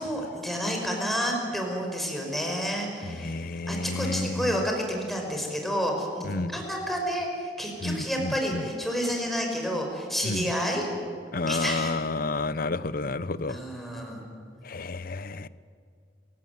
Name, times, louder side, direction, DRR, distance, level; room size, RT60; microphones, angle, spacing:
voice 1, 0.0-10.8 11.5-11.9 13.5-14.2, equal, ahead, 1 dB, 5.3 m, -30 dB
voice 2, 3.1-4.5 6.2-6.6 7.8-8.6 10.2-10.5 11.3-13.6 14.6-15.5, left 3 dB, 55° left, 16 dB, 0.8 m, -30 dB
28.0 x 17.5 x 9.3 m, 2.3 s
head